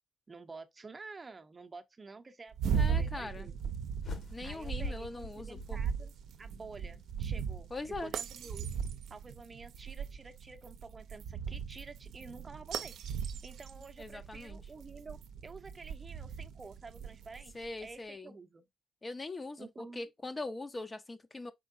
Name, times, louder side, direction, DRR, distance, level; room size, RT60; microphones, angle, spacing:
voice 1, 0.3-3.7 4.4-6.1 6.4-8.7 9.1-12.9 13.4-18.7 19.6-20.0, right 4 dB, 30° right, 0.6 m, -50 dB
sound 1, 2.5-17.7, right 7 dB, 75° right, 0.5 m, -38 dB
voice 2, 2.7-3.5 4.3-5.8 7.7-8.1 14.0-14.6 17.5-18.3 19.0-21.5, left 2 dB, 25° left, 0.6 m, -41 dB
sound 2, 4.0-6.4, left 2 dB, 60° left, 1.5 m, -43 dB
4.4 x 4.4 x 2.5 m
cardioid pair, 90°, 0 cm